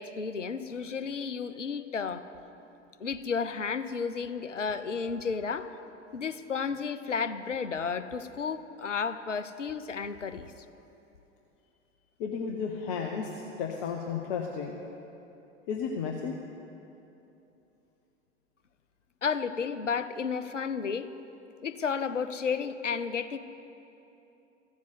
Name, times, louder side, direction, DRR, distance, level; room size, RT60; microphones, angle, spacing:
voice 1, 0.0-2.3 3.0-5.7 6.1-10.5 19.2-21.1 21.6-23.4, left 5 dB, 85° left, 11 dB, 0.6 m, -32 dB
voice 2, 12.2-14.8 15.7-16.4, left 6 dB, 45° left, 2 dB, 1.0 m, -33 dB
14.5 x 7.4 x 7.8 m, 2.9 s
figure-of-eight pair, 85°, 36 cm